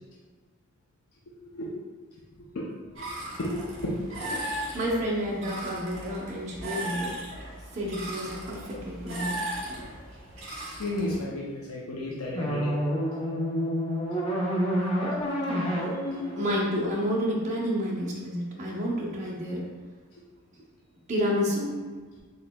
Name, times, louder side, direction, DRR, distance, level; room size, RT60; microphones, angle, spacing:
sound 1, 2.9-11.2, right 1 dB, 55° right, 1.1 m, -37 dB
voice 1, 3.4-4.3 10.8-12.8, left 1 dB, 75° left, -3 dB, 0.5 m, -33 dB
voice 2, 4.3-7.2 7.7-9.4 9.7-9.8 16.4-19.7 21.1-21.8, equal, 30° right, -4 dB, 0.7 m, -30 dB
sound 2, 12.4-17.5, equal, 25° left, 0.5 m, -29 dB
4.1 x 3.7 x 2.2 m, 1.5 s
head